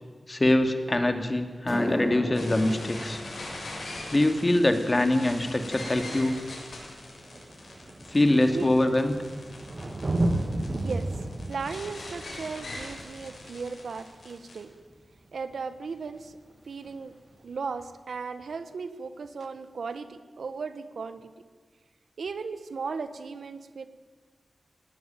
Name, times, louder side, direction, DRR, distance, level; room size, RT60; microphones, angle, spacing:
voice 1, 0.3-3.2 4.1-6.4 8.1-9.2, left 1 dB, 35° left, 7 dB, 2.5 m, -24 dB
sound 1, 1.5-10.0 10.3-10.7 11.4-11.5 14.3-14.4 16.0-16.1 16.3-16.6 16.8-17.4 17.8-17.9 18.4-18.5, left 1 dB, 10° left, 5.4 m, -39 dB
sound 2, 2.3-14.6, left 2 dB, 75° left, 7.1 m, -42 dB
Thunder, 5.7-5.8 6.7-6.8 7.1-14.4 16.1-16.2, right 2 dB, 50° right, 2.6 m, -33 dB
voice 2, 10.7-11.1 11.5-14.7 15.3-16.4 16.6-17.2 17.4-21.3 22.2-23.9, right 5 dB, 85° right, 11 dB, 1.2 m, -36 dB
19.0 x 18.0 x 9.1 m, 1.5 s
cardioid pair, 55°, 0 cm